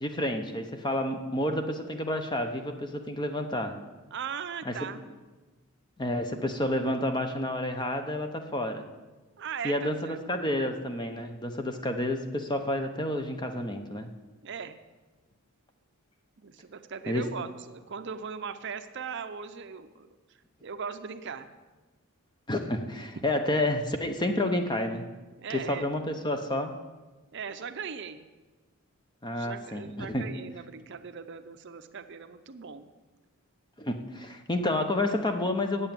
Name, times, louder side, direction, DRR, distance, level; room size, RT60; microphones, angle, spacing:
voice 1, 0.0-3.7 4.6-4.7 6.0-8.9 9.6-14.1 17.1-17.2 22.5-25.1 25.5-26.7 29.2-30.2 33.8-35.9, left 1 dB, 20° left, 6 dB, 0.8 m, -30 dB
voice 2, 4.1-5.0 9.4-10.2 14.4-14.8 16.4-20.2 20.6-21.5 25.4-25.9 27.3-28.3 29.2-32.9, right 6 dB, 55° right, 9 dB, 0.6 m, -39 dB
8.0 x 8.0 x 8.8 m, 1.2 s
head